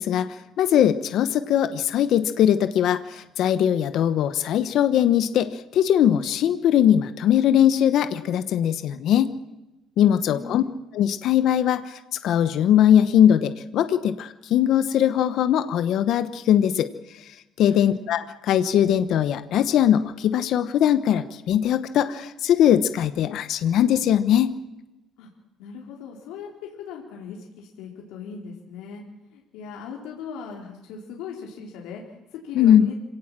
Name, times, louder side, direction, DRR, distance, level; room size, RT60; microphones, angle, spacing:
voice 1, 0.0-9.3 10.0-10.6 10.9-16.9 17.1-17.2 17.6-24.5 32.5-32.9, left 10 dB, 50° left, 11 dB, 1.1 m, -20 dB
voice 2, 10.1-10.8 17.7-18.0 25.2-25.3 25.6-29.0 29.3-33.0, left 5 dB, 85° left, -1 dB, 4.0 m, -39 dB
26.0 x 18.0 x 7.5 m, 0.99 s
cardioid pair, 170°, 0 cm